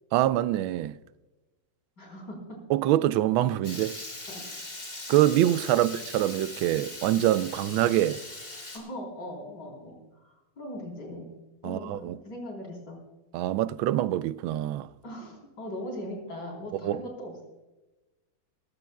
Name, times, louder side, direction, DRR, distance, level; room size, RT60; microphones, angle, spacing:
voice 1, 0.1-0.9 2.7-4.0 5.1-8.2 11.6-12.2 13.3-14.9 16.8-17.0, right 13 dB, 85° right, 1.4 m, -25 dB
voice 2, 2.0-2.6 4.3-4.4 5.8-5.9 8.7-10.0 10.2-11.3 11.6-13.0 15.0-17.4, equal, 55° left, 4.5 m, -39 dB
Water tap faucet / Liquid, 3.6-8.8, left 2 dB, 35° left, 3.1 m, -40 dB
20.0 x 15.5 x 2.3 m
omnidirectional pair, 2.2 m